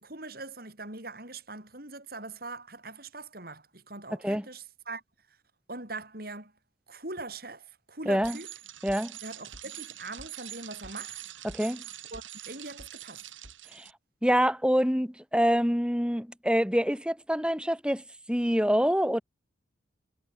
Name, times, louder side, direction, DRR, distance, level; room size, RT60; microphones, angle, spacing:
voice 1, 0.0-5.0 5.7-6.5 6.9-8.5 9.2-11.2 12.1-13.2, right 2 dB, 50° right, 6.1 m, -42 dB
voice 2, 8.1-8.4 8.8-9.1 11.4-11.8 13.7-13.9 14.2-19.2, equal, 5° right, 5.3 m, -26 dB
Bicycle, 8.2-13.9, right 11 dB, 85° right, 7.9 m, -44 dB
head